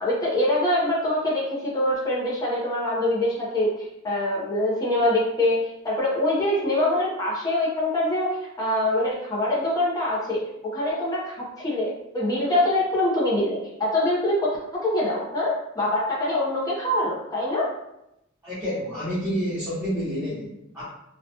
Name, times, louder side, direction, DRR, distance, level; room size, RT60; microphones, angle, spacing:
voice 1, 0.0-8.3 8.6-17.7, left 1 dB, 20° left, -6 dB, 0.6 m, -24 dB
voice 2, 18.4-20.8, equal, 15° right, -12 dB, 0.9 m, -29 dB
2.8 x 2.2 x 2.7 m, 0.85 s
head